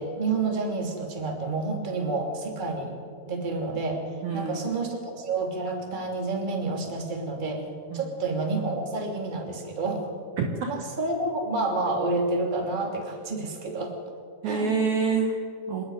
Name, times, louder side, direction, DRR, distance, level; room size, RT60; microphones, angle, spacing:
voice 1, 0.0-2.9 3.3-4.0 4.3-7.6 7.9-10.0 10.7-13.9 14.4-14.7, right 3 dB, 15° right, 1 dB, 1.9 m, -29 dB
voice 2, 4.2-4.6 7.9-8.0 10.4-10.7 14.4-15.8, right 4 dB, 75° right, 3 dB, 1.7 m, -27 dB
26.5 x 11.5 x 9.9 m, 2.2 s
omnidirectional pair, 5.5 m